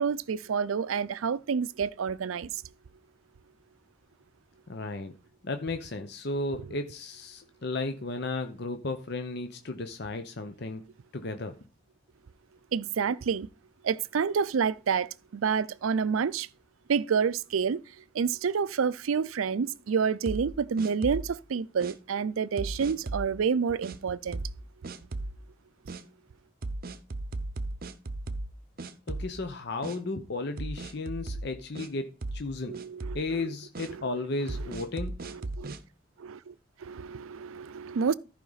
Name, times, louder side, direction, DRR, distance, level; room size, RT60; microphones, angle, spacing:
voice 1, 0.0-2.5 12.7-13.5 13.8-16.5 16.9-17.8 18.2-24.4 32.7-33.4 35.3-35.7 36.2-36.5 36.9-38.1, right 6 dB, 90° right, 0.4 m, -28 dB
voice 2, 4.7-5.2 5.4-10.8 11.1-11.5 29.1-32.7 33.1-35.1, left 2 dB, 55° left, 0.8 m, -34 dB
sound 1, 20.3-21.4 21.8-22.0 22.6-23.3 23.8-24.0 24.3-24.6 24.8-25.4 25.9-26.0 26.6-28.5 28.8-29.5 29.8-30.0 30.6-31.9 32.2-32.5 32.7-33.3 33.8-33.9 34.5-35.8, right 2 dB, 45° right, 0.7 m, -36 dB
14.0 x 5.0 x 4.0 m
head